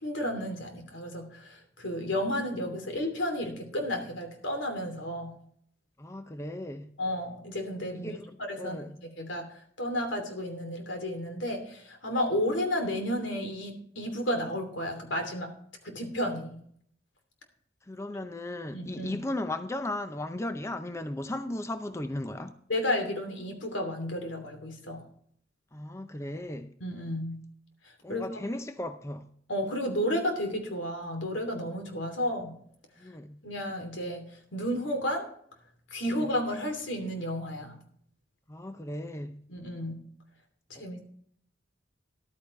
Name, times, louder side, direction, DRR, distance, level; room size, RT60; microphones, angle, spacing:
voice 1, 0.0-5.3 7.0-8.2 8.5-15.5 15.8-16.6 18.7-19.2 22.7-25.0 26.8-27.4 28.1-28.4 29.5-32.5 33.4-34.3 34.5-35.3 35.9-37.7 39.5-39.9 40.7-41.0, equal, 85° left, 2.9 m, -32 dB
voice 2, 6.0-6.9 7.9-9.0 17.9-22.5 25.7-26.7 28.0-29.3 33.0-33.4 36.1-36.3 38.5-39.4, left 1 dB, 15° left, 0.6 m, -36 dB
14.0 x 11.5 x 3.2 m
head